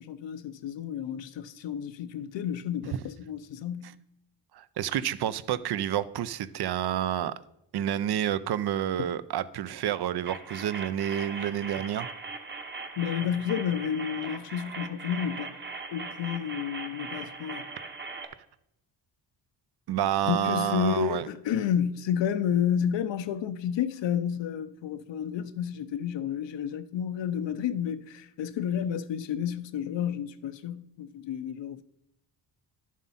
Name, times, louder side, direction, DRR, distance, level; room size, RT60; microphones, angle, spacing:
voice 1, 0.0-4.0 13.0-15.6 15.9-17.7 20.3-31.8, left 9 dB, 80° left, 0.7 m, -31 dB
voice 2, 4.5-7.3 7.7-12.1 19.9-21.3, right 10 dB, 60° right, 0.6 m, -29 dB
sound 1, 10.3-18.3, right 4 dB, 25° right, 0.9 m, -40 dB
11.0 x 7.3 x 4.1 m
wide cardioid pair, 165°, 43 cm